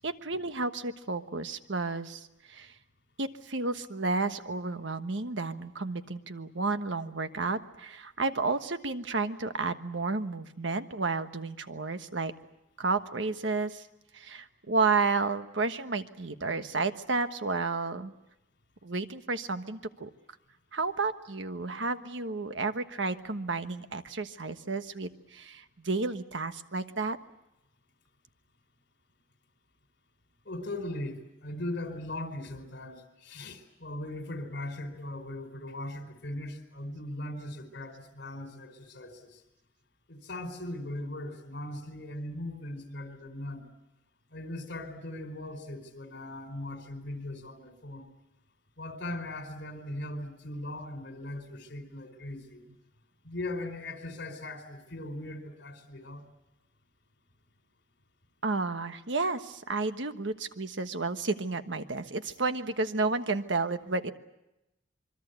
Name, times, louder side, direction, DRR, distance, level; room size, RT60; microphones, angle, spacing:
voice 1, 0.0-2.7 3.2-12.3 12.8-13.8 14.1-18.1 18.8-20.1 20.7-27.2 58.4-64.1, right 3 dB, 75° right, 9 dB, 1.3 m, -31 dB
voice 2, 30.4-39.4 40.1-43.7 44.3-48.1 48.8-52.6 53.2-56.3, left 1 dB, 65° left, 6 dB, 4.6 m, -39 dB
26.0 x 23.5 x 8.1 m, 0.91 s
head